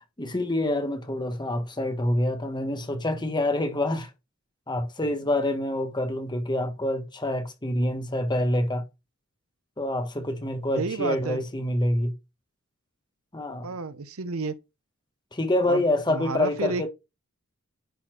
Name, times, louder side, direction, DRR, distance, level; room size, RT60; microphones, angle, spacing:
voice 1, 0.2-4.1 4.7-8.8 9.8-12.1 13.3-13.7 15.3-16.9, left 1 dB, 20° left, 1.3 m, -26 dB
voice 2, 10.7-11.4 13.6-14.5 15.6-15.8 16.1-16.9, right 4 dB, 80° right, 0.8 m, -30 dB
10.5 x 4.3 x 4.5 m
head